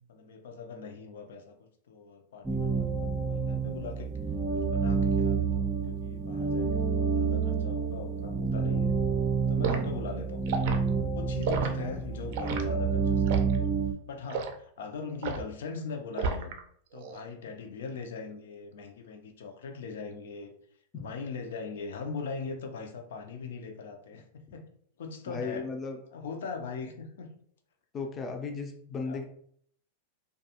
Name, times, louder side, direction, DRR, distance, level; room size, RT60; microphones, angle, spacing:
voice 1, 0.1-4.1 4.5-8.9 9.5-10.5 11.1-13.7 14.0-16.5 16.9-20.5 21.0-24.7 25.0-25.7 26.1-27.3 29.1-29.2, left 5 dB, 80° left, 5 dB, 0.5 m, -40 dB
sound 1, 2.4-13.9, right 5 dB, 10° right, 0.7 m, -29 dB
voice 2, 9.5-10.0 20.9-21.0 25.3-26.0 27.9-29.2, left 4 dB, 25° left, 4 dB, 0.4 m, -36 dB
Liquid, 9.6-9.8 10.5-10.8 11.4-11.7 12.3-12.6 13.3-13.6 14.3-14.5 15.2-15.5 16.2-16.6 16.9-17.2, right 5 dB, 60° right, 0.4 m, -31 dB
2.4 x 2.2 x 2.8 m, 0.64 s
supercardioid pair, 130°, 0 cm